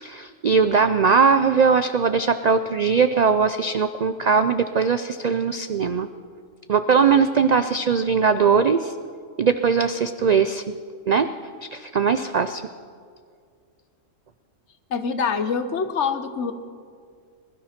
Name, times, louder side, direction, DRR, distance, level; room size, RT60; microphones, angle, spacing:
voice 1, 0.0-6.1 6.7-8.9 9.4-10.7 11.1-11.3 11.7-12.6, right 5 dB, 70° right, 10 dB, 0.4 m, -20 dB
voice 2, 14.9-16.5, left 5 dB, 65° left, 10 dB, 1.2 m, -25 dB
20.0 x 12.5 x 5.8 m, 2.1 s
omnidirectional pair, 1.3 m